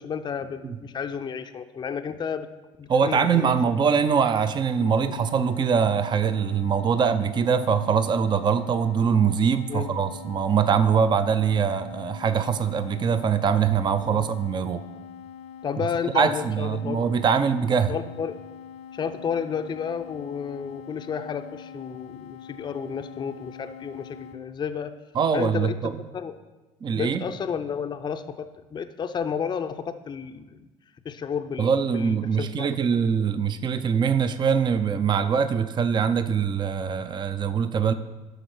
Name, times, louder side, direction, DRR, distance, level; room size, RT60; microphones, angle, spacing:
voice 1, 0.0-2.5 2.8-3.5 5.0-5.2 9.7-9.9 14.0-14.3 15.6-17.1 17.9-18.4 18.9-24.9 25.3-25.7 26.1-26.3 26.9-30.6 31.0-32.7 33.2-33.3, left 7 dB, 30° left, 7 dB, 0.5 m, -31 dB
voice 2, 2.9-14.8 16.1-17.9 25.1-26.0 26.8-27.2 31.6-37.9, right 6 dB, 30° right, 11 dB, 0.5 m, -23 dB
sound 1, 4.8-24.4, left 8 dB, 85° left, 0.7 m, -43 dB
11.5 x 3.8 x 6.1 m, 1.1 s
hypercardioid pair, 80°, 15 cm